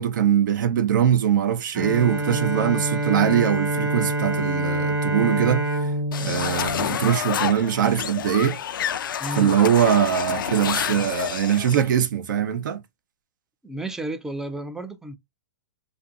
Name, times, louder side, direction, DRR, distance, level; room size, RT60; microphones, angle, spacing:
voice 1, 0.0-5.9 6.2-8.6 9.4-12.8, right 9 dB, 65° right, 0.6 m, -22 dB
Bowed string instrument, 1.7-7.6, right 1 dB, 25° right, 0.9 m, -26 dB
sound 1, 6.1-11.9, left 9 dB, 80° left, 0.4 m, -28 dB
voice 2, 9.2-9.6 13.6-15.2, right 1 dB, 5° right, 0.3 m, -32 dB
2.6 x 2.5 x 2.5 m
hypercardioid pair, 130°, 11 cm